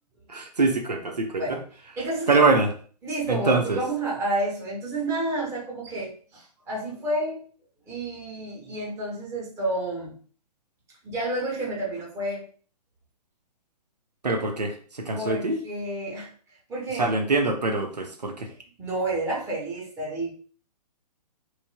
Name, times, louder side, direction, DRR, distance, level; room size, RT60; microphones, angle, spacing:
voice 1, 0.3-1.4 2.3-2.7 3.3-3.8 14.2-15.5 17.0-18.5, right 3 dB, 75° right, 4 dB, 0.7 m, -24 dB
voice 2, 2.0-2.4 3.0-7.4 7.9-10.2 11.0-12.4 15.1-16.3 16.7-17.1 18.8-20.3, right 1 dB, 15° right, -5 dB, 1.2 m, -30 dB
4.2 x 3.1 x 2.2 m, 0.43 s
figure-of-eight pair, 125°, 21 cm